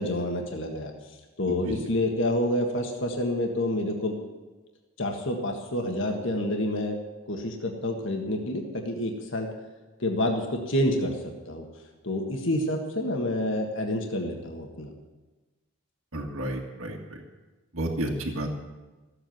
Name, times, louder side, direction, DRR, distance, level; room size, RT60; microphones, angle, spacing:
voice 1, 0.0-4.1 5.0-7.0 7.3-9.5 10.0-11.2 11.4-11.6 12.0-14.9, left 1 dB, 60° left, 2 dB, 1.6 m, -28 dB
voice 2, 16.1-17.2 17.7-18.5, right 1 dB, 70° right, 1 dB, 1.9 m, -31 dB
15.0 x 8.3 x 9.2 m, 1.2 s
head